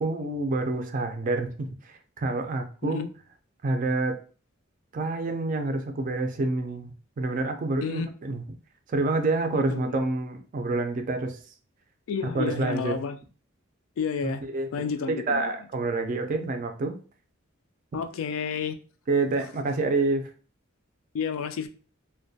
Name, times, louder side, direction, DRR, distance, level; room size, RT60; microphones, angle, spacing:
voice 1, 0.0-3.1 3.6-4.2 4.9-8.4 8.9-11.4 12.3-12.9 14.2-17.0 19.1-20.3, right 2 dB, 40° right, 0.3 m, -28 dB
voice 2, 12.1-13.2 14.0-14.4 14.7-15.4 17.9-18.8 21.1-21.7, left 6 dB, 75° left, 0.3 m, -30 dB
2.3 x 2.1 x 2.6 m
head